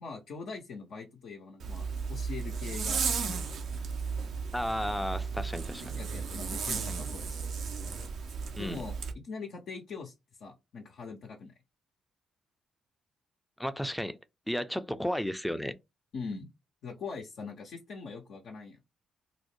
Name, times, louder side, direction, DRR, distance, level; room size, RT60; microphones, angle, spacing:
voice 1, 0.0-3.5 6.0-7.5 8.6-9.0 9.2-10.1 10.4-11.5 16.1-16.5 16.8-18.8, left 4 dB, 70° left, 0.6 m, -42 dB
Zipper (clothing), 1.6-9.1, right 5 dB, 65° right, 0.5 m, -34 dB
voice 2, 4.5-5.8 8.6-8.8 13.6-14.2 14.5-15.7, equal, 5° left, 0.5 m, -33 dB
2.5 x 2.0 x 3.0 m
hypercardioid pair, 45°, 0 cm